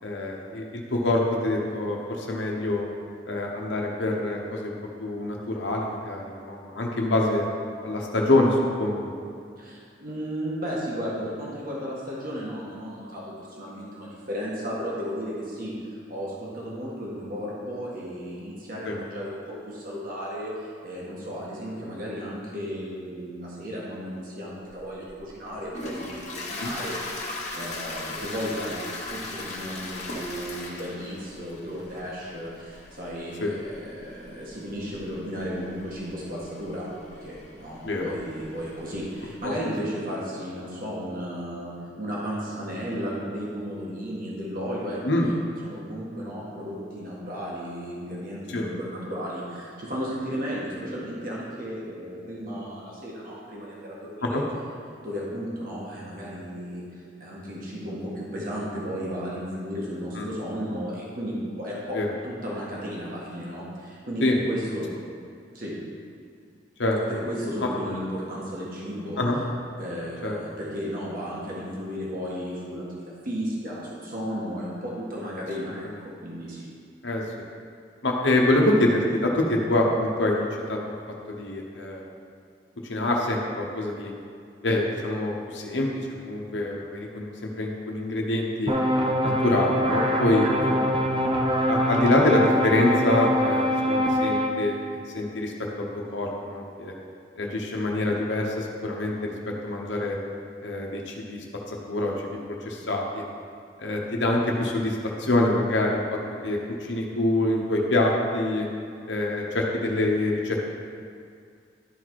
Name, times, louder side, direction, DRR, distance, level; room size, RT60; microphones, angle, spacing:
voice 1, 0.0-2.9 3.2-4.7 5.0-7.5 7.8-9.1 18.8-19.0 26.6-26.7 33.4-33.5 37.8-38.1 39.4-39.5 45.0-45.3 48.5-48.7 54.2-54.4 60.2-60.3 61.9-62.1 64.2-64.3 66.8-67.0 69.2-69.4 70.2-70.4 77.0-77.2 78.0-80.8 81.3-82.0 82.8-84.1 84.6-85.9 86.2-88.7 89.2-91.1 91.7-95.5 95.8-97.0 97.4-100.2 100.6-102.4 102.6-103.2 103.8-108.7 109.1-110.6, left 1 dB, 90° left, -1 dB, 1.0 m, -25 dB
voice 2, 9.6-27.0 27.5-36.9 37.2-45.3 45.6-54.4 55.0-64.9 65.5-65.7 67.1-69.2 69.8-75.9 76.2-76.7, equal, 50° right, -5 dB, 1.6 m, -34 dB
Toilet flush, 25.0-39.4, left 2 dB, 40° left, 1.3 m, -39 dB
sound 1, 88.7-94.5, equal, 30° right, 0.6 m, -24 dB
12.0 x 4.2 x 4.7 m, 2.3 s
head